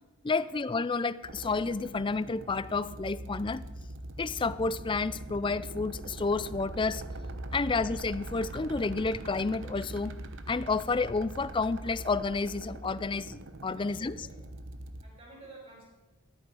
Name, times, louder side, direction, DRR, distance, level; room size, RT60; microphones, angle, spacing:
voice 1, 0.2-3.6 4.2-7.0 7.5-10.1 10.5-14.3, left 4 dB, 25° left, 16 dB, 0.4 m, -30 dB
sound 1, 1.2-15.0, right 1 dB, 60° right, 0.9 m, -42 dB
voice 2, 13.7-14.4 15.0-15.8, right 2 dB, 35° right, -5 dB, 6.0 m, -52 dB
14.0 x 13.0 x 4.8 m, 1.2 s
head